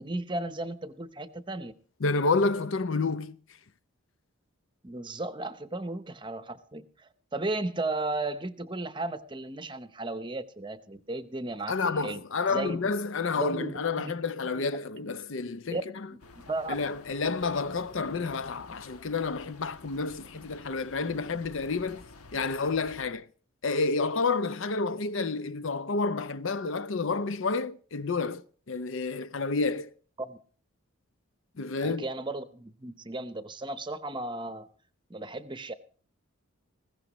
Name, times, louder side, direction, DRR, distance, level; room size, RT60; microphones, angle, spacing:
voice 1, 0.0-1.7 4.8-12.2 12.5-12.9 13.4-14.1 15.7-15.8 16.5-16.8 30.2-30.4 31.8-34.7 35.1-35.7, right 2 dB, 20° right, 0.8 m, -35 dB
voice 2, 2.0-3.4 11.7-15.8 16.7-22.0 22.3-23.3 23.6-29.9 31.6-32.0, left 4 dB, 60° left, 0.6 m, -29 dB
sound 1, 16.2-23.1, left 3 dB, 85° left, 1.3 m, -51 dB
20.0 x 16.0 x 3.0 m
head